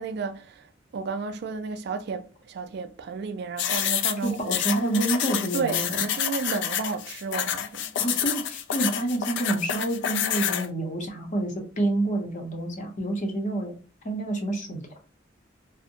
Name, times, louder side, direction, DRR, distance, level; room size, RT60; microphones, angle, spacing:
voice 1, 0.0-4.6 5.5-7.9, right 4 dB, 60° right, 0.3 m, -32 dB
sound 1, 3.6-10.7, left 9 dB, 65° left, 0.3 m, -28 dB
voice 2, 4.2-6.1 8.0-13.8 14.0-15.0, right 2 dB, 40° left, 0.7 m, -28 dB
2.6 x 2.0 x 2.7 m
head